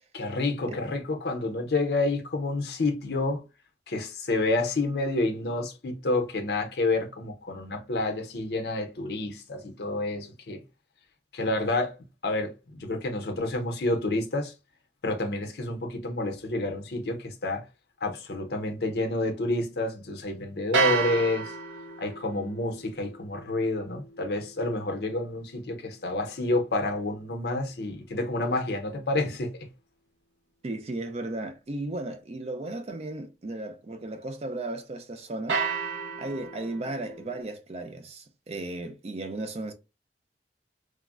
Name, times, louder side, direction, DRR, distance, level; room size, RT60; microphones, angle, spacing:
voice 1, 0.1-3.4 3.9-10.6 11.3-11.9 12.2-14.5 15.0-17.6 18.0-21.5 22.0-29.7, left 2 dB, 60° left, 0.6 m, -29 dB
sound 1, 20.7-26.9 35.5-37.4, right 5 dB, 80° right, 0.7 m, -33 dB
voice 2, 30.6-35.6 36.2-39.7, right 2 dB, 35° right, 0.4 m, -35 dB
3.4 x 2.0 x 2.3 m
head